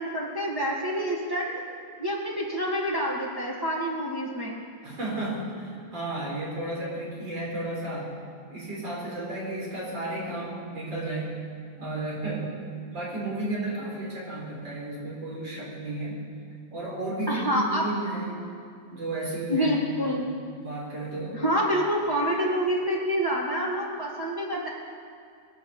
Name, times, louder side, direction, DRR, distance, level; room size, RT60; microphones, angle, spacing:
voice 1, 0.0-1.5 2.0-4.6 17.3-17.8 19.5-20.3 21.3-24.7, equal, 10° right, -6 dB, 1.9 m, -27 dB
voice 2, 4.8-8.1 8.5-11.4 11.8-12.6 12.9-16.2 16.7-18.5 18.9-20.2 20.6-21.4, right 2 dB, 65° right, -4 dB, 5.1 m, -33 dB
23.0 x 8.7 x 7.1 m, 2.3 s
omnidirectional pair, 2.2 m